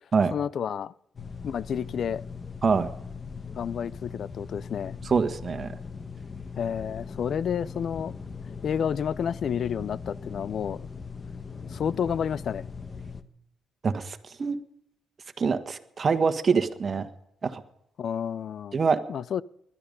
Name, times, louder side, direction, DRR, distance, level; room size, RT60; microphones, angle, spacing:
voice 1, 0.3-0.9 1.4-2.2 3.5-5.0 6.6-8.1 8.6-10.9 11.7-12.7 18.0-18.8 19.1-19.4, left 8 dB, 60° left, 0.5 m, -30 dB
sound 1, 1.2-13.2, left 5 dB, 35° left, 1.3 m, -40 dB
voice 2, 5.0-5.8 13.8-14.6 15.4-17.1 17.4-17.6 18.7-19.0, right 5 dB, 40° right, 1.5 m, -25 dB
21.0 x 12.5 x 5.4 m
cardioid pair, 90°, 0 cm